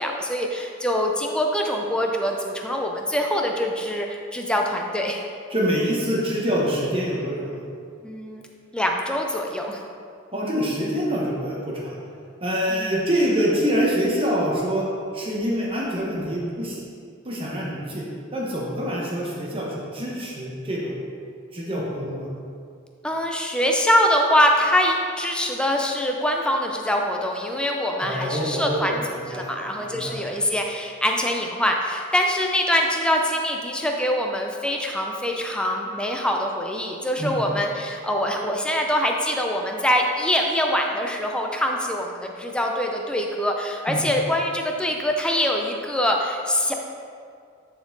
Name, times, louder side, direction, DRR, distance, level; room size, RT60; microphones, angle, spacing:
voice 1, 0.0-5.2 8.0-8.4 8.7-9.8 12.7-13.0 23.0-46.7, left 1 dB, 5° left, 1 dB, 0.5 m, -24 dB
voice 2, 5.5-7.7 10.3-12.0 12.4-14.9 15.1-16.8 17.2-18.0 18.3-21.0 21.5-22.3 28.0-29.5 29.8-30.2 37.2-37.3 43.9-44.0, equal, 25° right, -4 dB, 1.1 m, -25 dB
9.7 x 4.3 x 4.0 m, 2.3 s
head